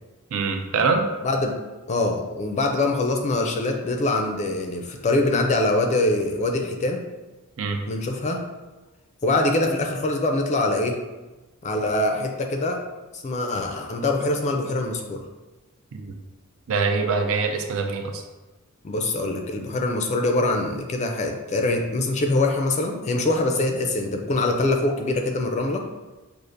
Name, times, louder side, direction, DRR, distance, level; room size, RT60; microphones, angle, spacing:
voice 1, 0.3-1.1 7.6-7.8 15.9-16.1 16.7-18.2, right 4 dB, 65° right, 4 dB, 0.5 m, -24 dB
voice 2, 1.2-1.6 1.9-7.0 7.9-8.4 9.2-11.0 11.6-12.8 13.1-15.2 18.8-25.8, left 2 dB, 30° left, 3 dB, 0.4 m, -24 dB
6.3 x 2.5 x 2.5 m, 1.2 s
head